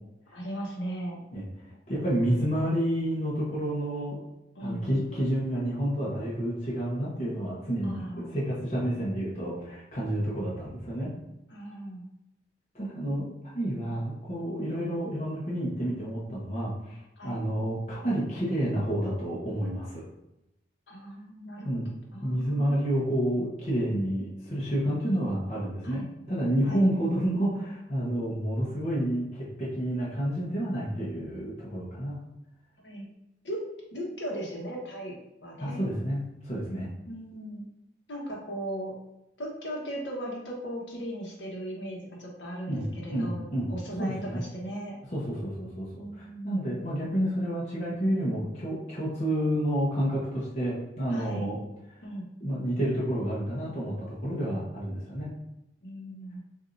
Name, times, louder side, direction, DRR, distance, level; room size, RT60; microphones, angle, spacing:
voice 1, 0.3-1.2 4.5-4.8 7.8-8.3 11.5-12.0 17.2-17.4 20.9-21.7 22.1-22.7 25.8-26.1 26.6-26.8 32.8-33.1 33.4-33.6 33.9-35.1 35.4-35.8 37.0-37.6 38.1-38.9 39.4-45.0 45.9-46.7 51.1-51.4 52.0-52.2 55.8-56.4, equal, 85° left, -2 dB, 1.3 m, -37 dB
voice 2, 1.9-4.2 4.6-11.1 12.7-20.0 21.6-21.9 22.2-26.0 26.3-32.2 35.6-36.9 42.7-43.7 44.0-44.4 45.1-51.6 52.4-55.3, equal, 40° left, -7 dB, 1.0 m, -29 dB
6.6 x 2.7 x 2.6 m, 0.90 s
head